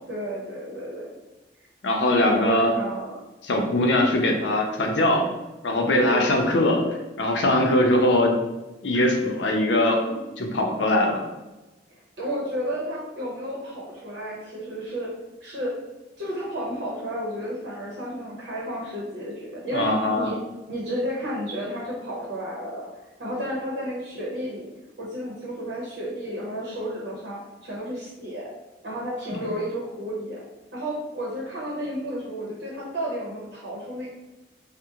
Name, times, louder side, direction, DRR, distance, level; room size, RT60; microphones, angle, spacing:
voice 1, 0.1-1.1 2.2-3.2 5.9-6.4 11.9-15.1 15.4-15.8 16.2-20.4 20.7-22.9 23.2-24.7 25.0-28.5 28.8-30.4 30.7-34.1, equal, 75° right, -5 dB, 0.8 m, -32 dB
voice 2, 1.8-2.7 3.4-5.3 5.6-6.8 7.2-8.4 8.8-11.2 19.7-20.3, left 1 dB, 85° left, 2 dB, 0.6 m, -21 dB
3.5 x 2.1 x 2.8 m, 1.0 s
head